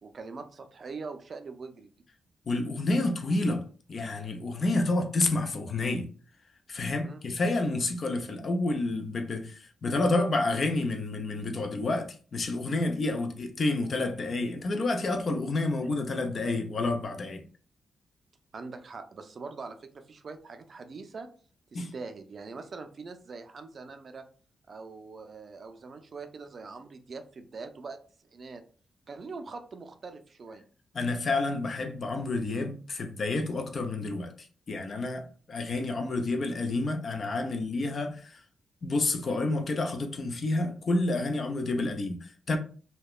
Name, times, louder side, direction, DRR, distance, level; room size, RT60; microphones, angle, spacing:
voice 1, 0.0-1.9 7.0-7.2 18.5-21.3 21.7-24.2 24.7-28.0 28.3-28.6 29.1-30.6, right 4 dB, 45° right, 0.3 m, -42 dB
voice 2, 2.5-3.6 3.9-6.1 6.7-17.4 21.7-21.9 30.9-38.4 38.8-42.6, left 2 dB, 45° left, 0.4 m, -29 dB
2.8 x 2.1 x 2.2 m
wide cardioid pair, 135°, 0 cm